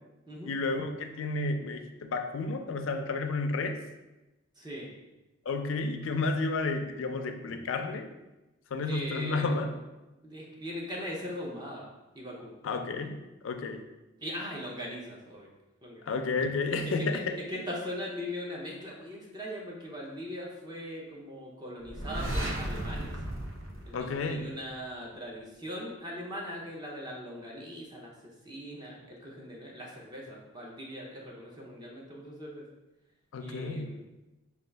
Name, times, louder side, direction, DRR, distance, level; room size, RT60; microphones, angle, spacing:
voice 1, 0.4-3.8 5.5-8.1 8.7-9.8 12.6-13.9 16.0-17.4 23.9-24.5 33.3-34.0, left 3 dB, 70° left, 6 dB, 0.4 m, -31 dB
voice 2, 4.6-4.9 8.9-9.6 10.2-11.9 12.1-12.5 14.2-15.5 15.8-16.1 17.0-23.1 23.9-28.1 28.4-32.6 33.4-34.0, equal, 20° right, -3 dB, 0.6 m, -40 dB
sound 1, 21.8-24.7, right 1 dB, 75° right, 0.7 m, -35 dB
5.0 x 2.3 x 3.3 m, 1.0 s
head